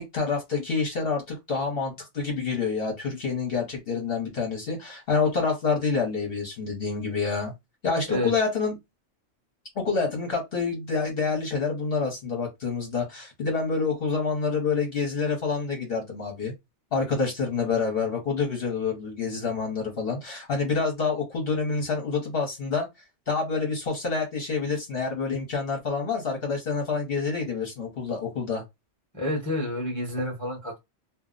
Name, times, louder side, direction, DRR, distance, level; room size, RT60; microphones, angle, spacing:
voice 1, 0.0-7.5 7.8-8.8 9.8-16.5 16.9-22.9 23.3-28.6, left 4 dB, 55° left, 1.0 m, -27 dB
voice 2, 29.1-30.8, left 1 dB, 15° left, 0.8 m, -29 dB
2.5 x 2.0 x 3.6 m
omnidirectional pair, 1.2 m